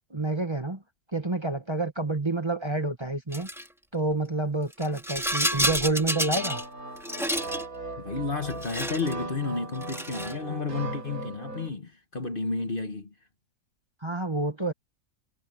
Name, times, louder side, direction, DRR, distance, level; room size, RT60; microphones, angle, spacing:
voice 1, 0.1-0.8 1.1-3.5 3.9-6.6 14.0-14.7, right 2 dB, 20° right, 1.5 m, -28 dB
Rattle, 3.3-3.7 4.7-6.7 7.0-7.6 8.5-9.2 9.8-10.4, equal, ahead, 1.9 m, -29 dB
sound 1, 6.4-11.7, right 2 dB, 90° right, 7.4 m, -38 dB
voice 2, 8.0-13.1, left 4 dB, 40° left, 1.5 m, -32 dB
omnidirectional pair, 1.5 m